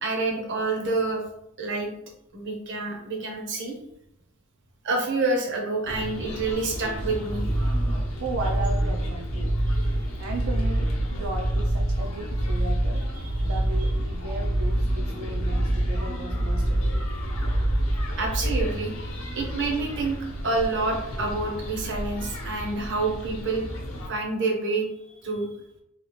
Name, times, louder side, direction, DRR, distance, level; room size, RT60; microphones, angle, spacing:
voice 1, 0.0-1.2 1.6-1.9 2.3-3.7 4.8-7.4 18.2-18.9 19.4-20.2 20.4-23.7 24.1-24.9 25.2-25.5, right 3 dB, 60° right, 1 dB, 0.8 m, -27 dB
sound 1, 5.9-24.1, equal, 70° left, 0.7 m, -36 dB
sound 2, 7.0-18.6, right 1 dB, ahead, 0.3 m, -26 dB
voice 2, 8.2-9.6 10.2-13.1 13.4-17.0 17.6-17.7, right 2 dB, 85° right, 1 dB, 0.4 m, -36 dB
3.3 x 2.3 x 3.0 m, 0.81 s
head